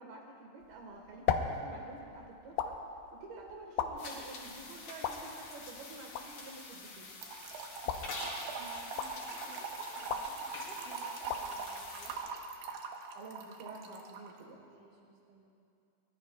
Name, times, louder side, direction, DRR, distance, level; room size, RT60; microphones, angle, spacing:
voice 1, 0.0-2.8 3.1-7.1 13.1-14.6, right 3 dB, 70° right, 0 dB, 3.1 m, -49 dB
sound 1, 0.6-12.8, left 7 dB, 75° left, 2.3 m, -40 dB
sound 2, 4.0-12.2, left 3 dB, 55° left, 3.9 m, -46 dB
Trickle dribble / Fill (with liquid), 7.2-14.3, right 5 dB, 85° right, 3.0 m, -42 dB
voice 2, 7.8-12.6 14.5-15.5, right 3 dB, 40° right, -1 dB, 2.5 m, -56 dB
23.5 x 21.0 x 2.2 m, 2.5 s
omnidirectional pair, 4.7 m